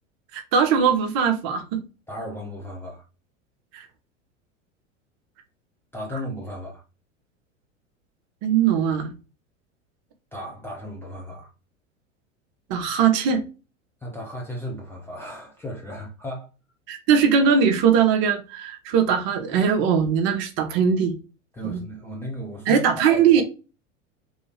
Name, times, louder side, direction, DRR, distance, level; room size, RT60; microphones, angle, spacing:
voice 1, 0.3-1.8 3.7-3.8 8.4-9.1 12.7-13.4 16.9-21.1 21.6-21.8 22.7-23.4, right 7 dB, 35° right, 0.7 m, -20 dB
voice 2, 2.1-3.0 5.9-6.8 10.3-11.5 14.0-16.5 21.5-23.4, left 1 dB, 5° left, 0.4 m, -35 dB
3.1 x 2.7 x 3.0 m
figure-of-eight pair, 85°, 39 cm